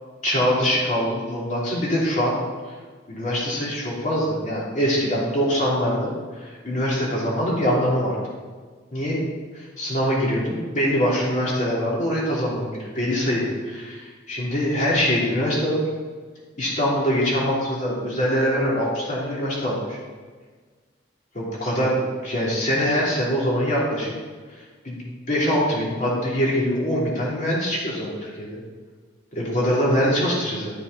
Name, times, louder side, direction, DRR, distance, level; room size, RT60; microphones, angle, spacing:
voice 1, 0.2-2.3 3.1-8.2 8.9-9.2 9.5-15.8 16.6-20.0 21.3-24.1 24.8-28.6 29.3-30.7, equal, 40° left, -5 dB, 3.0 m, -23 dB
11.5 x 6.7 x 4.2 m, 1.5 s
head